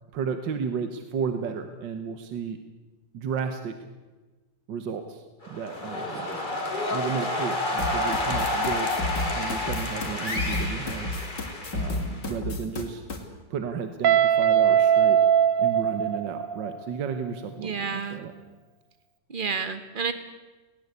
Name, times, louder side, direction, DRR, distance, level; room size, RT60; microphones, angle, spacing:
voice 1, 0.1-2.6 3.1-3.7 4.7-5.2 5.5-6.2 6.9-8.9 9.3-11.1 11.7-13.0 13.5-15.2 15.6-18.3, right 6 dB, 80° right, 8 dB, 2.0 m, -33 dB
sound 1, 5.4-12.3, left 1 dB, 25° left, 2.9 m, -30 dB
sound 2, 7.8-13.2, left 3 dB, 70° left, 3.5 m, -32 dB
Guitar, 14.0-16.9, right 9 dB, 55° right, 1.1 m, -21 dB
voice 2, 17.6-18.2 19.3-20.1, right 5 dB, 30° right, 10 dB, 1.6 m, -30 dB
20.0 x 18.5 x 8.3 m, 1.2 s
omnidirectional pair, 2.0 m